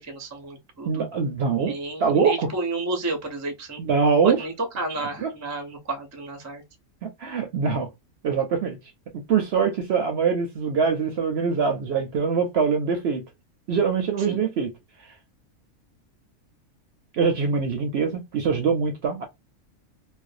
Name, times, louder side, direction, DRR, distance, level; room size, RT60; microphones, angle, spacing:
voice 1, 0.0-1.1 1.6-3.8 4.2-6.6 14.3-14.4, right 2 dB, 25° right, 0.3 m, -31 dB
voice 2, 0.9-1.7 2.0-2.5 3.8-4.4 5.2-5.3 7.0-7.9 8.2-8.8 9.3-13.2 13.7-14.7 17.1-19.2, right 5 dB, 65° right, 0.7 m, -23 dB
2.5 x 2.2 x 2.4 m
omnidirectional pair, 1.5 m